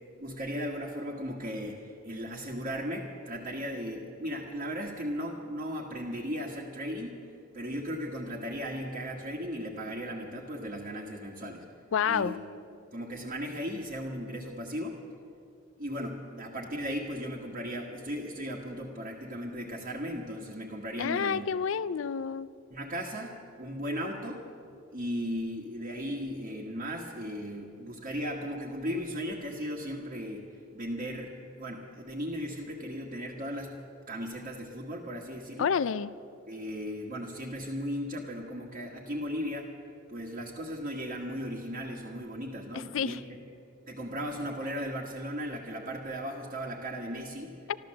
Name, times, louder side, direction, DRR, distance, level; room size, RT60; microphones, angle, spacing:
voice 1, 0.2-7.1 7.5-11.6 12.0-12.4 12.9-15.0 15.8-21.5 22.7-23.3 23.6-24.4 24.9-35.7 36.5-39.7 40.1-43.2 43.9-47.5, equal, 45° right, -5 dB, 1.6 m, -36 dB
voice 2, 11.9-12.3 21.0-22.5 35.6-36.1 42.7-43.2 47.7-47.8, left 7 dB, 70° left, 17 dB, 0.4 m, -29 dB
13.5 x 13.0 x 7.6 m, 2.5 s
head